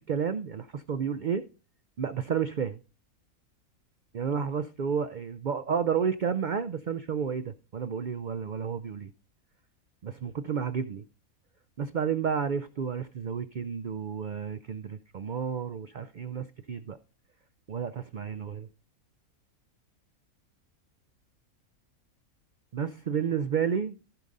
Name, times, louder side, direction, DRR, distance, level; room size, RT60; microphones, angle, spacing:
voice 1, 0.1-1.4 2.0-2.8 4.1-9.1 10.0-11.0 11.8-17.0 17.7-18.7 22.7-24.0, right 7 dB, 80° right, 0.4 m, -31 dB
14.5 x 5.3 x 3.8 m
omnidirectional pair, 1.5 m